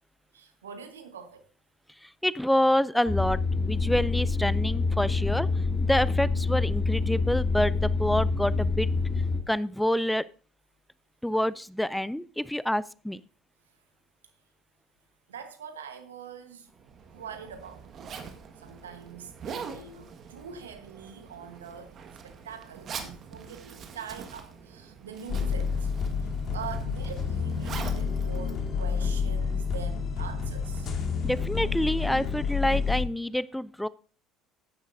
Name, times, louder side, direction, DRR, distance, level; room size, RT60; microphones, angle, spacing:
voice 1, 0.3-1.5 15.3-16.7 17.1-17.9 18.6-21.9 22.2-25.9 26.2-31.1, right 7 dB, 80° right, 1.3 m, -43 dB
voice 2, 2.0-5.5 5.9-8.9 9.5-10.2 11.2-13.2 31.2-33.9, left 1 dB, 5° left, 0.4 m, -27 dB
sound 1, 3.1-9.4, left 3 dB, 25° left, 2.8 m, -26 dB
Zipper (clothing), 16.7-29.4, right 6 dB, 45° right, 1.6 m, -44 dB
sound 2, 25.3-33.0, left 5 dB, 45° left, 2.1 m, -29 dB
14.0 x 10.0 x 2.7 m
figure-of-eight pair, 60°, 0 cm